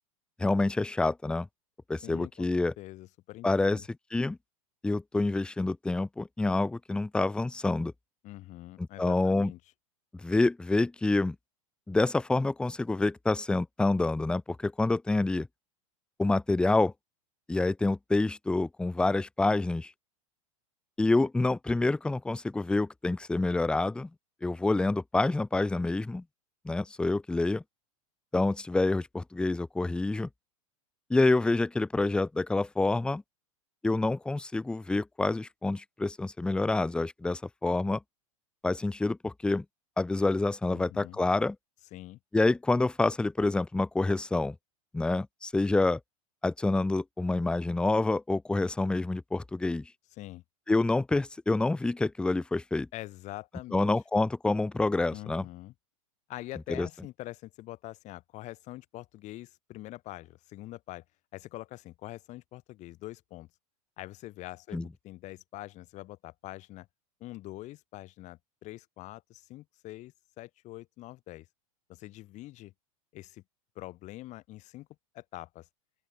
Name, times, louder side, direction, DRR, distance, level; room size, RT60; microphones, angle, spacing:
voice 1, 0.4-1.5 1.9-2.7 3.4-3.8 4.1-4.4 4.8-7.9 9.0-9.5 10.2-11.4 11.9-15.5 16.2-16.9 17.5-19.9 21.0-24.1 24.4-26.2 26.6-27.6 28.3-30.3 31.1-33.2 33.8-38.0 38.6-39.6 40.0-41.6 42.3-44.6 44.9-46.0 46.4-49.9 50.7-52.9 53.7-55.5 56.7-56.9 64.7-64.9, left 2 dB, 5° left, 0.6 m, -27 dB
voice 2, 2.0-2.5 2.8-3.9 8.2-9.6 40.7-41.2 41.9-42.2 50.2-50.4 52.9-53.9 55.1-55.7 56.3-61.0 61.3-63.5 64.0-66.9 67.2-71.5 71.9-72.7 73.1-73.4 73.8-74.9 75.1-75.7, left 17 dB, 40° left, 5.3 m, -44 dB
open air
supercardioid pair, 130°, 18 cm